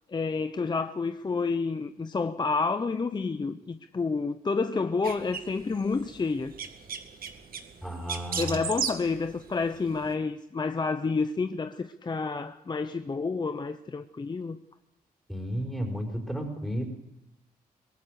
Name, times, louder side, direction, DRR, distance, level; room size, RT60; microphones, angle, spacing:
voice 1, 0.1-6.5 8.4-14.6, left 4 dB, 30° left, 0.8 m, -29 dB
sound 1, 5.0-10.1, right 7 dB, 70° right, 2.0 m, -37 dB
voice 2, 7.8-8.6 15.3-16.9, equal, ahead, 4.8 m, -33 dB
23.5 x 17.0 x 6.6 m
cardioid pair, 85°, 16 cm